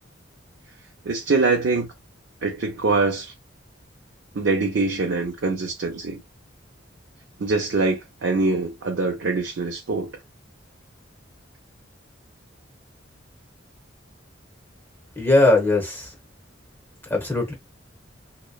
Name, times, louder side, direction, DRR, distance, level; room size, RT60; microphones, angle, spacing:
voice 1, 1.0-1.9 2.4-3.3 4.3-6.2 7.4-10.1, right 3 dB, 70° right, 0.6 m, -23 dB
voice 2, 15.2-16.1 17.1-17.5, left 2 dB, 10° left, 1.0 m, -19 dB
2.9 x 2.1 x 2.2 m
head